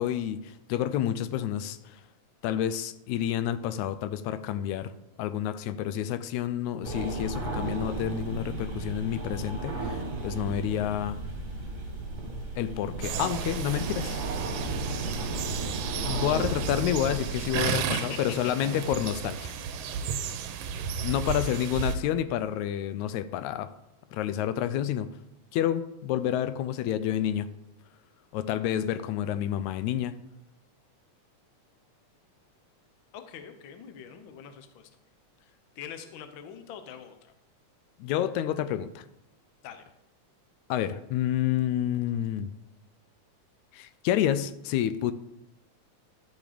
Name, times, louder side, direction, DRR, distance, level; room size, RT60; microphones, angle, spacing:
voice 1, 0.0-2.0 2.4-4.9 5.2-11.2 12.6-14.2 14.9-15.4 16.0-19.5 21.0-23.7 24.1-25.1 25.5-27.5 28.3-30.2 38.0-39.1 40.7-42.5 43.7-45.1, left 11 dB, 85° left, 13 dB, 1.9 m, -29 dB
sound 1, 6.8-17.6, right 2 dB, 30° right, 1.4 m, -34 dB
sound 2, 13.0-22.0, right 7 dB, 85° right, 2.1 m, -33 dB
voice 2, 17.6-18.7 21.3-21.6 33.1-34.9 35.4-37.3 39.6-39.8, left 8 dB, 65° left, 8 dB, 1.2 m, -44 dB
11.5 x 6.3 x 5.1 m, 0.86 s
omnidirectional pair, 3.3 m